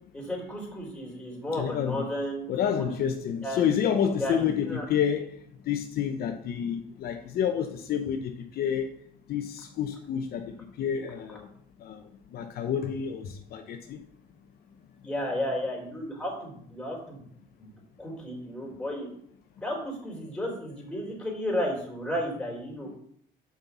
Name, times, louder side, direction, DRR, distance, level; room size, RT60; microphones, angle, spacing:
voice 1, 0.1-2.4 2.7-2.8 3.4-3.7 4.2-4.9 15.0-17.2 17.6-17.7 18.0-19.1 19.6-23.0, left 1 dB, 5° left, -2 dB, 4.1 m, -33 dB
voice 2, 1.6-2.1 2.5-5.3 5.7-8.9 9.3-10.4 10.8-11.5 11.8-12.0 12.3-14.0, left 8 dB, 65° left, 5 dB, 0.9 m, -29 dB
6.4 x 5.6 x 7.2 m, 0.65 s
cardioid pair, 110°, 17 cm